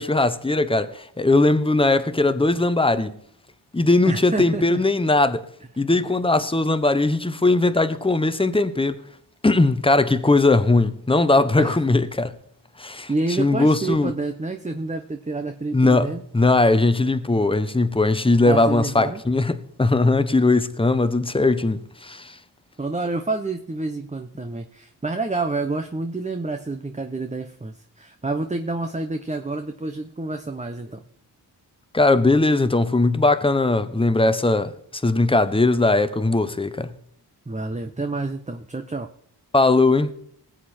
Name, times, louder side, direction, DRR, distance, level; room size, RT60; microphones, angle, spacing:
voice 1, 0.0-3.2 3.7-5.4 5.8-9.0 9.4-12.3 12.8-13.1 13.4-14.1 15.7-16.1 16.3-22.4 31.9-34.7 35.0-36.9 39.5-40.1, left 2 dB, 15° left, 1.0 m, -19 dB
voice 2, 4.1-4.8 11.6-11.8 13.1-16.2 18.4-19.2 22.8-31.0 37.5-39.1, right 3 dB, 15° right, 0.9 m, -28 dB
19.5 x 7.7 x 4.4 m
cardioid pair, 60°, 42 cm